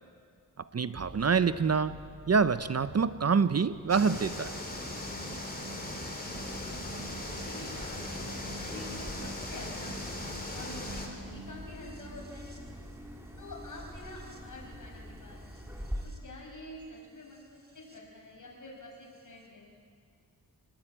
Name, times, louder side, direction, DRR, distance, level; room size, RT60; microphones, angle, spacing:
voice 1, 0.7-2.0 2.3-4.6, right 5 dB, 45° right, 13 dB, 0.6 m, -26 dB
sound 1, 0.9-18.0 19.2-19.3, right 1 dB, 25° right, 3.3 m, -48 dB
sound 2, 3.9-11.1, left 2 dB, 25° left, 3.6 m, -39 dB
sound 3, 6.3-16.1, equal, 5° right, 3.0 m, -45 dB
voice 2, 6.6-10.2 10.5-12.6 13.4-15.7 16.0-19.7, left 1 dB, 55° left, -1 dB, 6.9 m, -48 dB
25.0 x 20.0 x 8.9 m, 2.1 s
wide cardioid pair, 115°, 37 cm